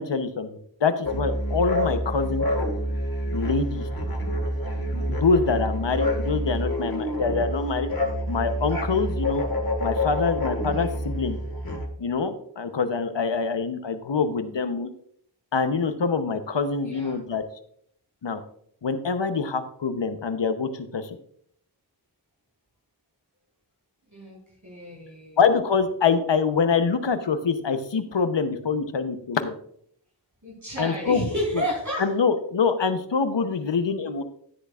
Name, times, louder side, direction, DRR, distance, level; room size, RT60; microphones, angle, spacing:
voice 1, 0.0-2.5 3.3-3.9 4.9-7.9 8.3-9.5 9.8-11.4 12.0-14.9 15.5-17.4 18.2-18.4 18.8-21.2 25.4-29.6 30.8-31.6 32.0-34.2, left 5 dB, 80° left, 9 dB, 0.9 m, -25 dB
sound 1, 1.0-11.9, equal, 55° left, 1.8 m, -27 dB
voice 2, 16.8-17.2 24.1-25.4 30.4-32.1, equal, 45° right, -5 dB, 4.2 m, -31 dB
11.0 x 10.0 x 2.4 m, 0.64 s
wide cardioid pair, 40°, 43 cm